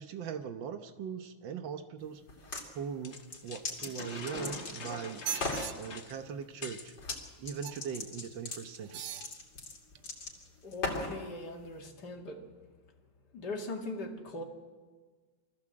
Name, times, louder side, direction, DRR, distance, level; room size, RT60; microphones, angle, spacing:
voice 1, 0.0-2.2 2.8-5.2 5.8-7.0 7.4-9.0, right 7 dB, 90° right, 8 dB, 1.8 m, -40 dB
sound 1, 2.3-2.7 3.1-5.0 5.3-5.7 7.0-7.2 7.4-11.2, left 3 dB, 90° left, 3.7 m, -38 dB
sound 2, 3.0-7.0, left 4 dB, 40° left, 1.3 m, -43 dB
sound 3, 4.0-4.7 5.1-5.7 7.6-8.0 8.8-9.3 10.0-10.1, right 10 dB, 70° right, 1.3 m, -40 dB
voice 2, 10.6-12.4 13.3-14.4, left 2 dB, 65° left, 2 dB, 2.6 m, -40 dB
23.5 x 15.0 x 7.7 m, 1.4 s
omnidirectional pair, 2.0 m